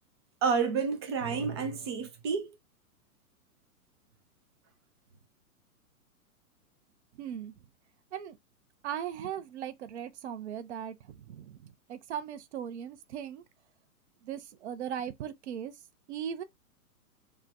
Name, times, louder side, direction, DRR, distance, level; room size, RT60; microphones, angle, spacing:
voice 1, 0.4-2.5, right 5 dB, 20° right, 0.3 m, -29 dB
voice 2, 7.2-7.5 8.1-8.4 8.8-13.4 14.2-15.7 16.1-16.4, right 9 dB, 50° right, 0.7 m, -38 dB
3.3 x 2.2 x 3.7 m
figure-of-eight pair, 115°, 44 cm